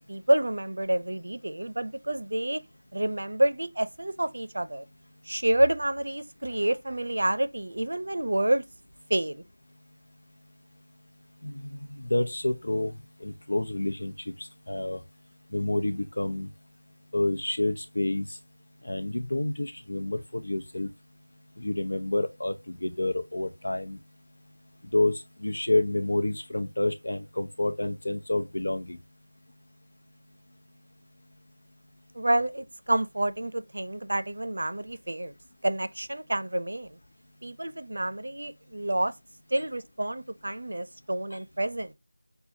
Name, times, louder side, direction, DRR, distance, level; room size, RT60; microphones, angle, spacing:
voice 1, 0.0-2.6 2.9-4.8 5.3-8.6 9.1-9.4 32.1-35.3 35.6-37.0 37.4-39.1 39.5-41.9, right 1 dB, 65° right, 0.6 m, -28 dB
voice 2, 11.4-14.1 14.4-15.0 15.5-16.5 17.1-18.3 18.8-20.9 21.6-24.0 24.9-29.0, left 2 dB, 75° left, 0.9 m, -29 dB
6.7 x 2.3 x 2.7 m
figure-of-eight pair, 175°, 0 cm